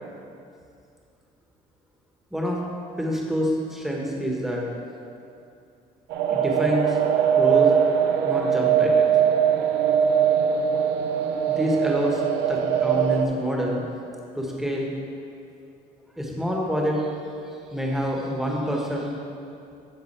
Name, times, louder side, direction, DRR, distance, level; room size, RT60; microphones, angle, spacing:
voice 1, 3.0-4.6 6.3-7.0 7.4-7.7 8.2-9.1 11.5-12.2 12.5-13.8 14.3-14.9 16.2-17.1 17.7-19.1, equal, ahead, -2 dB, 1.2 m, -26 dB
sound 1, 6.1-13.3, right 8 dB, 85° right, 0.6 m, -21 dB
11.0 x 4.0 x 4.3 m, 2.5 s
cardioid pair, 110°, 17 cm